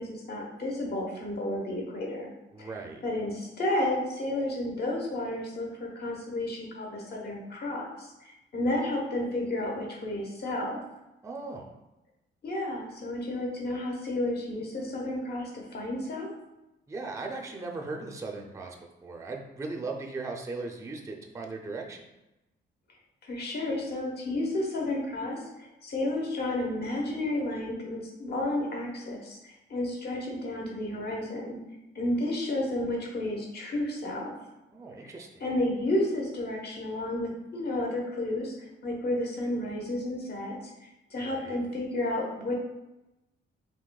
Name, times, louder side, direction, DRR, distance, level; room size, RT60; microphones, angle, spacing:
voice 1, 0.0-2.3 2.6-2.7 3.0-10.8 12.4-16.3 23.2-31.6 31.9-34.3 35.0-35.1 35.4-42.5, left 1 dB, 50° left, -1 dB, 1.1 m, -32 dB
voice 2, 2.5-3.0 11.2-11.7 16.9-18.8 19.0-22.0 34.7-35.3 41.2-41.6, right 3 dB, 15° right, 1 dB, 0.4 m, -38 dB
5.0 x 3.4 x 2.3 m, 0.97 s
wide cardioid pair, 140°, 21 cm